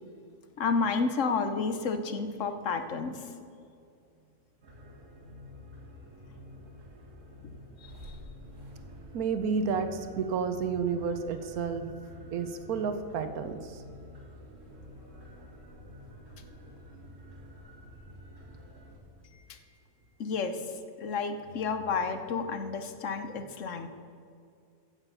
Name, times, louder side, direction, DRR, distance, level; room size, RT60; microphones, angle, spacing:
voice 1, 0.6-3.2 20.2-20.6 21.0-23.9, left 4 dB, 60° left, 8 dB, 1.1 m, -30 dB
sound 1, 4.6-19.0, equal, 60° right, 2.6 m, -49 dB
voice 2, 9.1-11.9 12.3-13.8, right 5 dB, 80° right, 9 dB, 1.3 m, -31 dB
15.5 x 7.0 x 5.6 m, 2.4 s
omnidirectional pair, 1.6 m